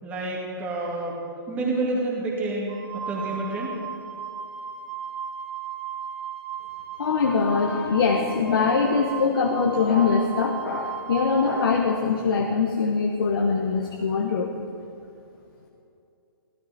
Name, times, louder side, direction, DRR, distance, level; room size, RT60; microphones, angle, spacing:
voice 1, 0.0-1.2 1.5-3.8, right 2 dB, 10° right, -4 dB, 2.2 m, -29 dB
Wind instrument woodwind instrument, 2.7-11.7, right 7 dB, 25° right, 2.4 m, -36 dB
voice 2, 7.0-14.5, left 5 dB, 65° left, 2 dB, 1.3 m, -23 dB
16.0 x 13.0 x 4.4 m, 2.7 s
hypercardioid pair, 165°, 13 cm